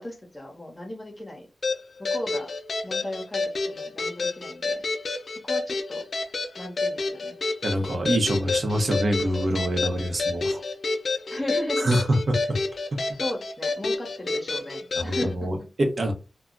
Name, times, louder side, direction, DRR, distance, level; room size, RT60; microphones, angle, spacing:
voice 1, 0.0-1.5 2.0-2.5 2.8-4.8 5.4-6.0 6.6-7.4 11.3-11.9 13.2-15.7, left 1 dB, 20° left, 1 dB, 0.9 m, -35 dB
sound 1, 1.6-15.3, left 3 dB, 65° left, 0.4 m, -29 dB
voice 2, 7.6-10.6 11.8-12.2 12.5-12.6 15.0-16.1, right 1 dB, 55° right, 3 dB, 0.7 m, -25 dB
2.3 x 2.0 x 3.6 m, 0.30 s
wide cardioid pair, 85°, 0 cm